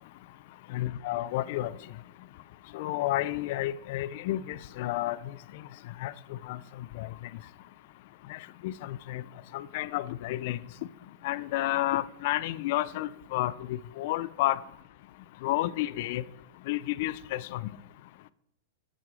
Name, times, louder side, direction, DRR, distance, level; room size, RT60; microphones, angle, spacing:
voice 1, 0.7-1.7 2.7-5.2 6.0-6.6 6.9-7.1 8.3-9.2 9.5-10.6 11.2-14.6 15.4-16.2 16.7-17.7, left 15 dB, 60° left, 0.5 m, -31 dB
8.6 x 7.6 x 4.9 m
hypercardioid pair, 115°, 0 cm